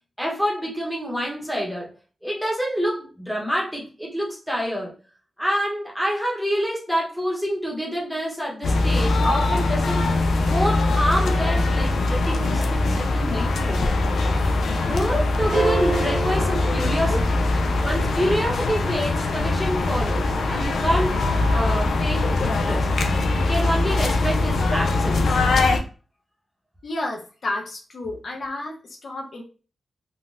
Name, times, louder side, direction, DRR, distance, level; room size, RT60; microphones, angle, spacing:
voice 1, 0.2-1.9 2.2-4.9 5.4-10.1 10.4-13.9 14.8-17.4 17.8-21.2 21.5-22.9 23.3-25.4, equal, ahead, -2 dB, 0.9 m, -27 dB
sound 1, 8.6-25.8, left 2 dB, 85° left, 0.4 m, -22 dB
sound 2, 15.5-17.8, right 4 dB, 60° right, 1.1 m, -28 dB
voice 2, 26.8-29.4, left 2 dB, 55° left, 0 dB, 0.7 m, -31 dB
3.7 x 2.1 x 2.5 m, 0.36 s
wide cardioid pair, 135°, 0 cm